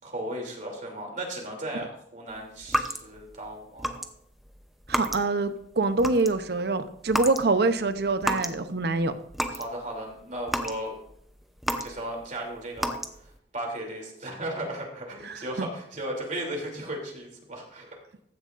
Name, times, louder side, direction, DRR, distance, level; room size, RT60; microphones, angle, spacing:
voice 1, 0.0-3.9 9.5-10.9 11.8-13.0 13.5-17.9, right 1 dB, 45° right, 0 dB, 3.0 m, -35 dB
sound 1, 2.6-3.3 3.8-4.1 4.4-5.5 5.8-6.5 7.1-7.5 7.8-8.6 9.0-9.7 10.1-12.3 12.8-13.4, equal, ahead, 0.7 m, -31 dB
voice 2, 4.9-9.1 15.2-15.7, right 3 dB, 65° right, 10 dB, 0.8 m, -25 dB
15.0 x 10.5 x 2.6 m, 0.72 s
head